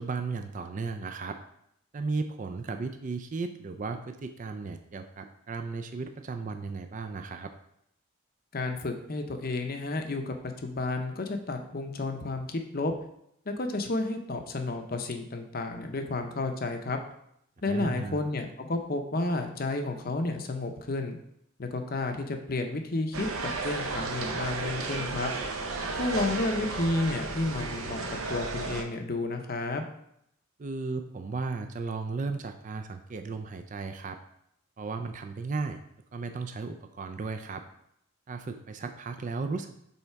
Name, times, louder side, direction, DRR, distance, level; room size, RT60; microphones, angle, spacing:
voice 1, 0.0-1.4 1.9-7.5 17.7-18.2 25.9-26.2 30.6-34.2 34.8-35.8 36.1-37.6 38.3-39.8, right 4 dB, 35° right, 7 dB, 0.4 m, -35 dB
voice 2, 8.5-12.9 13.5-17.0 17.6-21.2 21.6-25.3 26.0-29.8, left 2 dB, 45° left, 5 dB, 0.7 m, -31 dB
sound 1, 23.1-28.8, right 3 dB, 75° right, 0.8 m, -33 dB
5.6 x 4.0 x 4.6 m, 0.73 s
head